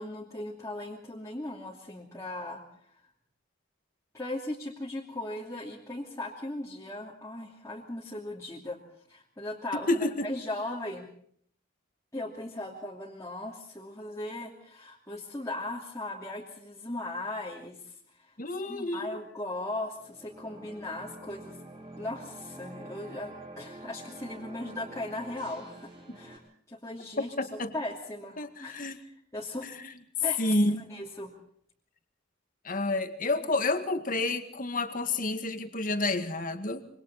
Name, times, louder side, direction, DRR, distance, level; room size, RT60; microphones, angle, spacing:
voice 1, 0.0-2.6 4.1-8.8 9.1-11.1 12.1-18.3 18.7-21.6 22.0-26.4 26.7-29.7 30.2-30.6 30.9-31.3, left 2 dB, 15° left, -4 dB, 2.8 m, -38 dB
voice 2, 9.9-10.3 18.4-19.2 26.1-26.2 27.2-27.7 28.4-29.0 29.6-29.9 30.4-30.8 32.6-36.9, left 2 dB, 45° left, 8 dB, 2.0 m, -29 dB
sound 1, 19.9-26.4, right 1 dB, 25° right, 6.4 m, -47 dB
26.5 x 24.5 x 4.2 m, 0.63 s
head